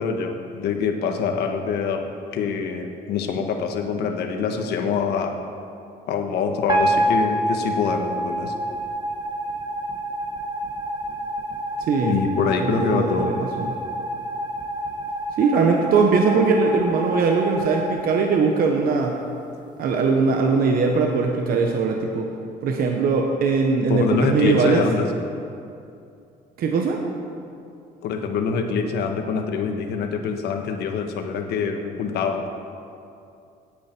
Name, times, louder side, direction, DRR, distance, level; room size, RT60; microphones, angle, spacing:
voice 1, 0.0-2.0 2.3-5.4 6.1-8.5 12.0-13.4 23.9-25.0 28.0-32.5, left 5 dB, 75° left, 4 dB, 1.4 m, -25 dB
sound 1, 6.7-19.0, right 1 dB, 25° right, 1.6 m, -28 dB
voice 2, 11.9-12.2 12.6-13.7 15.4-19.2 19.8-22.3 22.6-24.8 26.6-27.0, right 4 dB, 60° right, 2 dB, 1.2 m, -20 dB
17.5 x 8.6 x 4.6 m, 2.5 s
cardioid pair, 110°, 17 cm